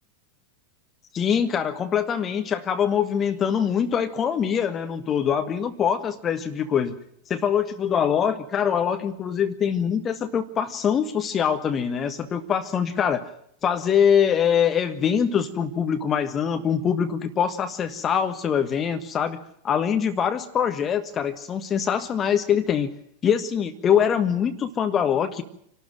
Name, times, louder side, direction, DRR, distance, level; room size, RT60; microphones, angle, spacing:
voice 1, 1.1-7.0 7.3-13.3 13.6-19.4 19.6-23.0 23.2-25.4, left 8 dB, 25° left, 8 dB, 1.4 m, -23 dB
27.0 x 12.5 x 9.0 m, 0.71 s
figure-of-eight pair, 90°, 0 cm